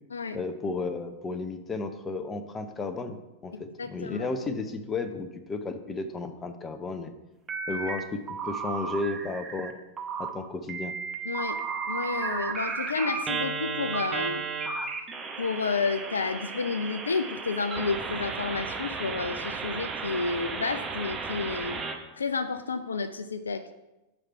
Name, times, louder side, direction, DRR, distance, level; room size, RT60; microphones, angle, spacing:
voice 1, 0.3-7.1 7.7-9.7 10.2-10.9, left 3 dB, 20° left, 8 dB, 0.7 m, -33 dB
voice 2, 3.5-4.3 11.3-11.6 11.9-14.5 15.4-21.8 22.2-23.7, left 4 dB, 75° left, 10 dB, 0.3 m, -31 dB
sound 1, 7.5-8.0 8.3-9.7 10.0-10.3 10.7-22.0, right 5 dB, 25° right, 0.8 m, -34 dB
7.3 x 4.9 x 4.5 m, 1.0 s
figure-of-eight pair, 90°, 0 cm